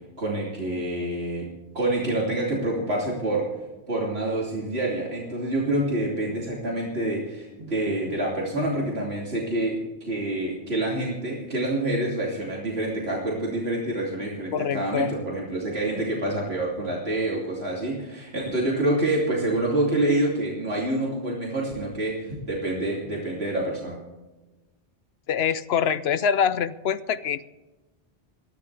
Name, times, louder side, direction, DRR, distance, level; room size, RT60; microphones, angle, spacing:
voice 1, 0.2-1.5 1.7-3.5 3.9-24.0, right 1 dB, 90° right, -4 dB, 3.3 m, -27 dB
voice 2, 14.5-15.1 25.3-27.5, left 7 dB, 80° left, 15 dB, 1.0 m, -24 dB
22.0 x 14.0 x 3.4 m, 1.1 s
omnidirectional pair, 1.0 m